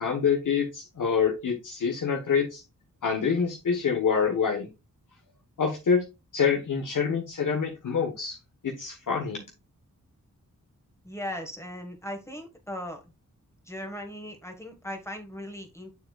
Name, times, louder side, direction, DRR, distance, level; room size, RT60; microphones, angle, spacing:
voice 1, 0.0-2.6 3.0-4.7 5.6-6.0 6.3-8.4 8.6-9.4, left 6 dB, 75° left, 0 dB, 1.2 m, -26 dB
voice 2, 11.0-13.0 13.7-15.9, left 1 dB, 10° left, 3 dB, 1.5 m, -38 dB
7.2 x 6.7 x 2.3 m, 0.26 s
wide cardioid pair, 90°, 32 cm